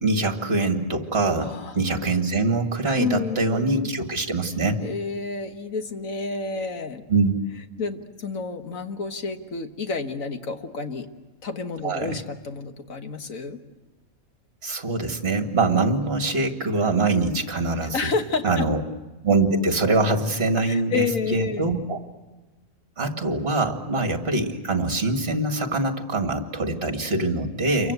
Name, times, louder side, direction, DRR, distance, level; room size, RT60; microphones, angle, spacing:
voice 1, 0.0-4.8 7.1-7.3 11.8-12.2 14.6-18.0 18.4-18.8 19.2-22.0 23.0-27.9, right 3 dB, 45° right, 5 dB, 2.3 m, -24 dB
voice 2, 1.4-1.8 2.9-3.9 4.8-7.0 7.8-11.1 11.4-13.6 17.8-18.7 20.6-21.7 27.8-27.9, left 4 dB, 70° left, 6 dB, 1.9 m, -30 dB
29.5 x 23.5 x 8.0 m, 1.2 s
omnidirectional pair, 1.4 m